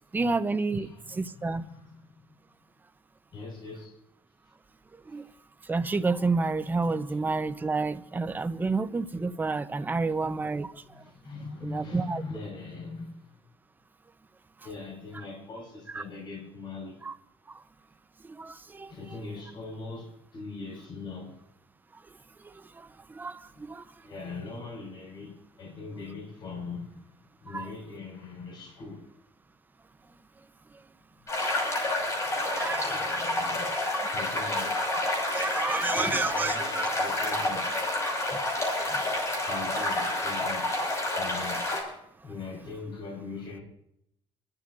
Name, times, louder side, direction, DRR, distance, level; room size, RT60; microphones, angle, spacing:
voice 1, 0.1-1.6 4.9-5.3 5.6-11.0 11.6-12.2 15.9-16.0 17.0-17.1 17.5-17.6 18.2-19.2 21.9-24.1 27.5-27.7 30.7-30.8 31.3-31.9 32.4-33.1 33.9-34.1 35.3-36.8 38.3-38.4 38.9-39.0, right 3 dB, 20° right, 0.8 m, -31 dB
voice 2, 0.7-2.0 3.3-4.0 10.8-13.4 14.6-17.0 18.9-21.4 24.0-27.1 27.4-29.1 32.3-33.8 34.1-35.0 35.6-37.7 39.0-40.8 41.2-41.6 42.2-43.6, left 3 dB, 50° left, 5.8 m, -41 dB
sound 1, 31.3-41.8, left 1 dB, 30° left, 5.9 m, -29 dB
28.5 x 12.5 x 2.6 m
cardioid pair, 120°, 10 cm